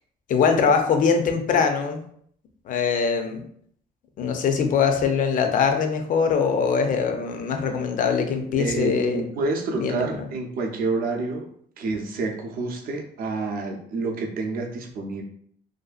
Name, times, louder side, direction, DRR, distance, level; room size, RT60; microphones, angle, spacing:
voice 1, 0.3-2.0 2.7-3.4 4.2-9.2 9.8-10.3, left 6 dB, 50° left, 5 dB, 0.5 m, -22 dB
voice 2, 8.6-11.5 11.8-15.2, right 3 dB, 60° right, 2 dB, 0.6 m, -28 dB
2.6 x 2.4 x 2.4 m, 0.64 s
cardioid pair, 110°, 17 cm